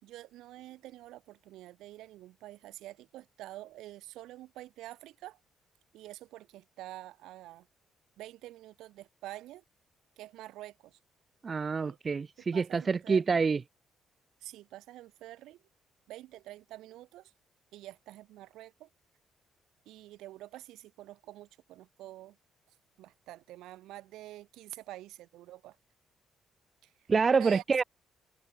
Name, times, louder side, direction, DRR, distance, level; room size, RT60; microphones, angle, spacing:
voice 1, 0.0-5.4 5.9-7.7 8.2-9.6 10.2-11.0 11.9-12.0 12.5-13.4 14.4-15.6 16.1-17.3 17.7-18.9 19.9-22.4 23.0-25.8 26.8-26.9 27.3-27.6, right 15 dB, 90° right, 4.1 m, -47 dB
voice 2, 11.4-13.6 27.1-27.8, right 5 dB, 35° right, 0.4 m, -27 dB
open air
cardioid pair, 90°, 0 cm